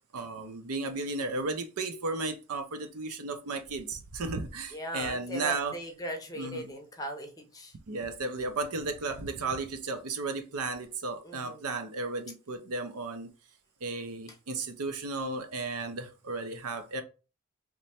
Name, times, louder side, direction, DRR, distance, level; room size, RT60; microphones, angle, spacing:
voice 1, 0.1-5.8 6.4-6.7 7.9-13.3 13.8-17.0, right 3 dB, 75° right, 0.6 m, -34 dB
voice 2, 4.7-7.7 11.2-11.6, equal, 15° left, 0.6 m, -38 dB
3.1 x 2.2 x 4.1 m
head